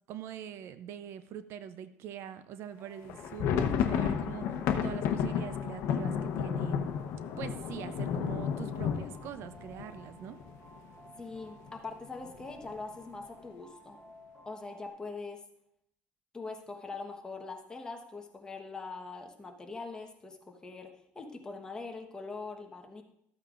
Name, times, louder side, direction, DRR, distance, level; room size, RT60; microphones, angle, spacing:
voice 1, 0.1-6.8 7.4-10.4, right 9 dB, 60° right, 12 dB, 0.5 m, -43 dB
sound 1, 2.8-14.9, equal, 15° right, 2.3 m, -56 dB
sound 2, 3.0-10.8 11.1-11.2 11.5-11.7 12.2-12.7, left 7 dB, 65° left, 0.9 m, -32 dB
voice 2, 11.2-14.0 14.4-15.4 16.3-23.0, left 3 dB, 15° left, 3 dB, 1.2 m, -42 dB
13.5 x 8.8 x 2.5 m, 0.78 s
cardioid pair, 130°, 5 cm